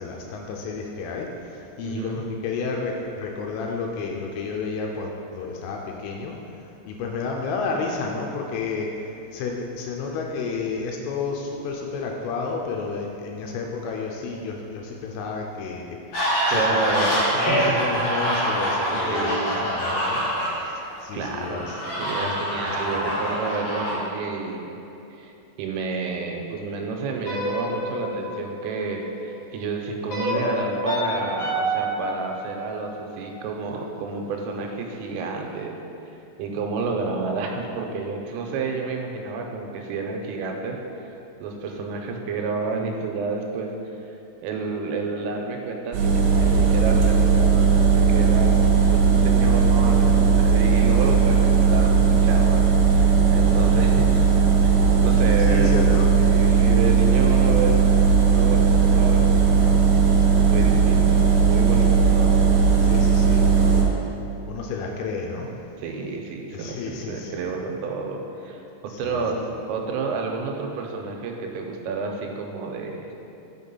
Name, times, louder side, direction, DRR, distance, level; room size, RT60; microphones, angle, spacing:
voice 1, 0.0-16.0 16.5-21.8 22.2-23.1 55.4-56.1 62.8-64.0 64.5-65.5 66.5-67.6 68.9-69.4, left 4 dB, 85° left, 0 dB, 3.1 m, -31 dB
voice 2, 1.8-2.2 16.5-17.6 18.9-19.6 20.6-20.8 21.1-24.7 25.1-25.3 25.6-35.7 36.4-41.1 41.4-43.7 44.0-44.1 44.4-54.3 54.6-54.7 55.0-57.7 58.3-58.7 58.9-59.7 60.5-62.4 65.8-73.1, right 4 dB, 90° right, 2 dB, 3.4 m, -30 dB
sound 1, 16.1-20.9 21.2-23.9, equal, 50° left, 2.4 m, -25 dB
sound 2, 27.3-29.4 30.1-33.2, equal, 65° left, 1.3 m, -29 dB
sound 3, 45.9-63.8, right 6 dB, 70° right, 2.8 m, -17 dB
6.5 x 6.0 x 5.4 m, 2.9 s
omnidirectional pair, 5.7 m